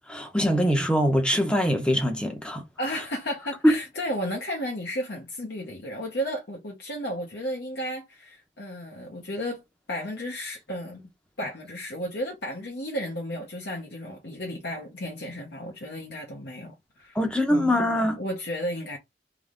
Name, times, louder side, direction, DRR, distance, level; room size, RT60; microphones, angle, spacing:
voice 1, 0.1-2.6 3.6-3.7 17.1-18.2, equal, 5° left, 0.8 m, -23 dB
voice 2, 2.8-9.6 9.9-11.0 11.4-17.2 17.5-17.8 18.2-19.0, equal, 60° left, 0.9 m, -33 dB
3.6 x 3.1 x 3.7 m
head